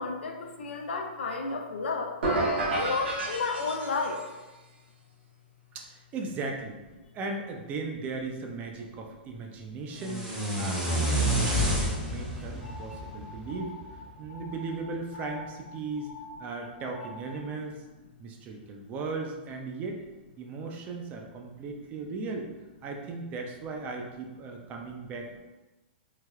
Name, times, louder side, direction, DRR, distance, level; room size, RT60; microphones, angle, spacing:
voice 1, 0.0-2.1 2.7-4.2, left 4 dB, 85° left, 2 dB, 0.4 m, -32 dB
sound 1, 2.2-4.3, right 2 dB, 75° right, 1.0 m, -30 dB
voice 2, 5.7-6.8 7.1-13.8 14.2-16.1 16.4-17.8 18.2-20.0 20.4-22.5 22.8-25.4, right 3 dB, 25° right, 2 dB, 0.4 m, -37 dB
sound 2, 9.9-14.0, right 1 dB, 10° right, 0.8 m, -29 dB
sound 3, 12.6-17.5, left 2 dB, 50° left, 0.7 m, -46 dB
3.2 x 2.1 x 2.3 m, 1.1 s
hypercardioid pair, 130°, 6 cm